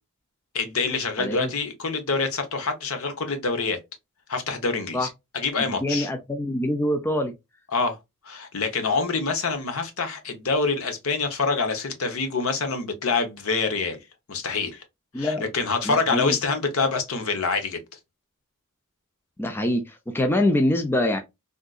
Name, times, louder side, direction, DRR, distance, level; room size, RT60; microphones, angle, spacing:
voice 1, 0.5-3.8 4.3-5.1 5.3-6.1 7.7-8.0 8.2-14.0 14.3-14.8 15.2-17.8, left 4 dB, 70° left, 0.8 m, -26 dB
voice 2, 1.2-1.5 4.9-5.1 5.8-7.3 15.1-15.4 15.8-16.4 19.4-21.2, left 1 dB, 10° left, 0.3 m, -24 dB
3.6 x 2.5 x 2.3 m
head